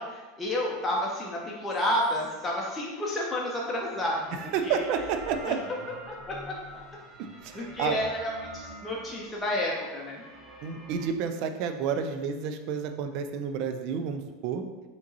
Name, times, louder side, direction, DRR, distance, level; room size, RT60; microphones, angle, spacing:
voice 1, 0.0-4.8 5.5-6.6 7.5-10.2, left 1 dB, 15° left, -3 dB, 0.7 m, -31 dB
sound 1, 1.4-11.1, right 1 dB, 25° right, 1.0 m, -47 dB
voice 2, 4.5-5.6 7.4-8.0 10.6-14.6, right 7 dB, 50° right, 7 dB, 0.4 m, -30 dB
5.7 x 3.0 x 2.7 m, 1.3 s
figure-of-eight pair, 80°, 0 cm